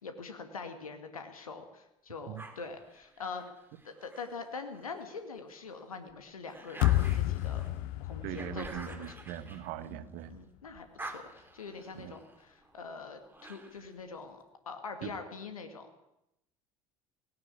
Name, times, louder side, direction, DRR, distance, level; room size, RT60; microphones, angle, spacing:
voice 1, 0.0-3.5 3.8-7.7 8.0-9.1 9.8-10.0 10.3-16.0, left 4 dB, 80° left, 7 dB, 2.2 m, -44 dB
sound 1, 2.4-5.1 5.6-10.4 10.7-14.0, right 2 dB, 10° right, 3.6 m, -49 dB
sound 2, 6.8-9.9, left 16 dB, 55° left, 0.7 m, -31 dB
voice 2, 8.2-10.4 11.9-12.1 15.0-15.1, right 12 dB, 55° right, 14 dB, 1.4 m, -41 dB
18.5 x 17.0 x 8.5 m, 0.86 s
figure-of-eight pair, 65°, 18 cm